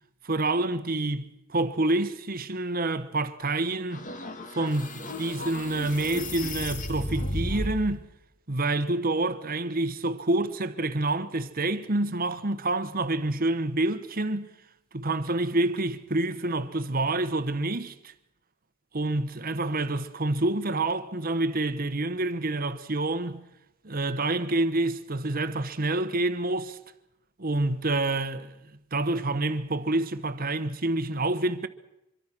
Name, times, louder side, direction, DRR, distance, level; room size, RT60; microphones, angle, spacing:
voice 1, 0.2-4.1 4.5-8.1 8.5-14.5 14.9-18.1 18.9-23.4 23.8-26.8 27.4-28.5 28.9-31.7, right 2 dB, 45° right, 1.3 m, -27 dB
sound 1, 3.9-7.9, left 1 dB, 35° left, 2.1 m, -34 dB
25.5 x 23.5 x 6.2 m
head